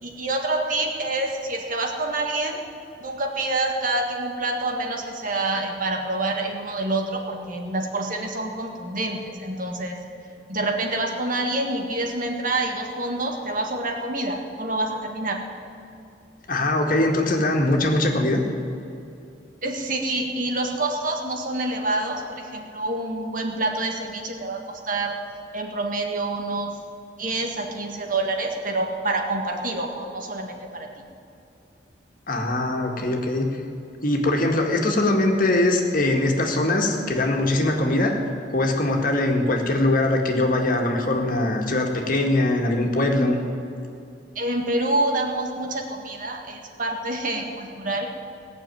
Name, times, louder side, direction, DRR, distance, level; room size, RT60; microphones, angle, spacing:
voice 1, 0.0-2.7 3.0-10.0 10.5-15.4 19.6-25.2 25.5-26.7 27.2-30.9 44.4-48.1, right 2 dB, 50° right, 2 dB, 1.8 m, -27 dB
voice 2, 16.5-18.4 32.3-33.5 34.0-38.1 38.5-43.4, left 2 dB, 50° left, 2 dB, 1.9 m, -22 dB
18.5 x 6.9 x 9.1 m, 2.6 s
head